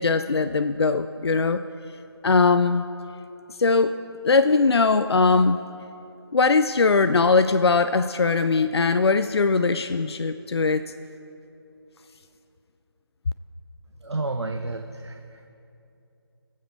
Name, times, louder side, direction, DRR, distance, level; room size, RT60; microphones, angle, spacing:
voice 1, 0.0-1.6 2.2-2.8 3.6-3.9 4.2-5.6 6.3-10.9, left 4 dB, 75° left, 11 dB, 0.4 m, -20 dB
voice 2, 14.0-15.5, right 2 dB, 85° right, 6 dB, 0.6 m, -31 dB
21.0 x 7.3 x 3.1 m, 2.8 s
figure-of-eight pair, 155°, 14 cm